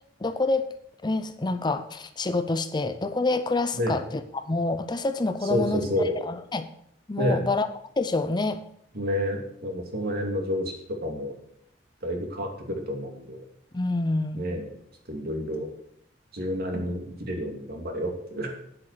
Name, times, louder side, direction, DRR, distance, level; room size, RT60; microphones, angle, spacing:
voice 1, 0.2-0.7 1.0-5.9 6.2-6.7 7.1-7.7 8.0-8.6 13.7-14.5, left 3 dB, 25° left, 10 dB, 0.6 m, -27 dB
voice 2, 5.5-6.2 7.2-7.5 8.9-11.4 12.0-13.4 14.4-14.7 15.1-15.7 16.3-18.6, equal, 55° right, 2 dB, 2.6 m, -29 dB
10.0 x 8.1 x 6.7 m, 0.71 s
head